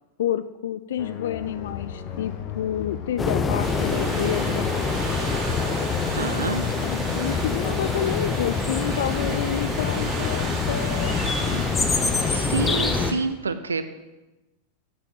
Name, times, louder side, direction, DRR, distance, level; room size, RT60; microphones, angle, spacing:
voice 1, 0.2-4.7 6.8-11.7, left 10 dB, 60° left, 13 dB, 0.4 m, -29 dB
sound 1, 1.0-11.6, left 8 dB, 40° left, 1.3 m, -35 dB
sound 2, 3.2-13.1, left 4 dB, 15° left, 0.9 m, -25 dB
sound 3, 3.6-13.1, right 3 dB, 25° right, 2.6 m, -35 dB
voice 2, 6.1-6.6 12.3-13.9, right 4 dB, 75° right, 11 dB, 0.6 m, -28 dB
8.1 x 7.6 x 7.6 m, 1.1 s
figure-of-eight pair, 90°, 0 cm